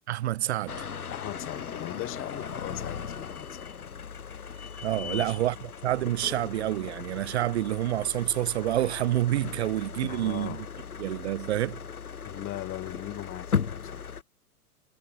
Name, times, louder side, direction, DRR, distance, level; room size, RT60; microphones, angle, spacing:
voice 1, 0.1-0.9 4.8-10.7 11.0-11.8, right 14 dB, 45° right, 0.8 m, -28 dB
sound 1, 0.7-14.2, left 6 dB, 70° left, 4.3 m, -37 dB
voice 2, 1.1-3.7 5.0-5.3 10.1-10.6 12.2-14.1, left 17 dB, 25° left, 2.6 m, -39 dB
figure-of-eight pair, 100°, 46 cm